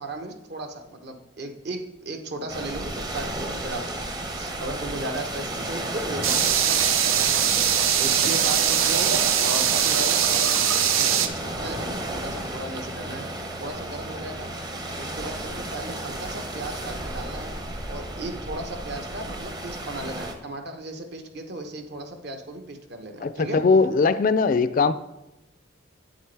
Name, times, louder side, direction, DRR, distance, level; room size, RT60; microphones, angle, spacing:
voice 1, 0.0-7.7 8.0-13.3 13.6-14.5 15.0-17.5 17.9-23.6, right 2 dB, 55° right, 5 dB, 0.9 m, -36 dB
sound 1, 2.5-20.3, right 1 dB, 20° right, 0.7 m, -33 dB
sound 2, 6.2-11.3, right 9 dB, 85° right, 0.6 m, -21 dB
voice 2, 23.2-24.9, left 4 dB, 40° left, 13 dB, 0.3 m, -20 dB
8.5 x 7.8 x 3.3 m, 0.95 s
head